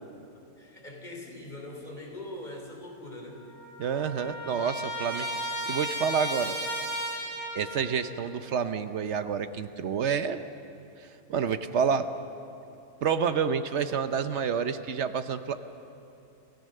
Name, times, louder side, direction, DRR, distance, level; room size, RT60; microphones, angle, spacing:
voice 1, 0.3-3.5, left 1 dB, 30° left, 0 dB, 3.6 m, -42 dB
Trumpet, 3.1-3.2 3.4-7.8, equal, 50° left, 5.8 m, -34 dB
voice 2, 3.8-6.6 7.5-10.4 11.3-12.1 13.0-15.6, right 6 dB, 55° right, 10 dB, 0.9 m, -29 dB
28.0 x 14.5 x 6.6 m, 2.8 s
omnidirectional pair, 1.6 m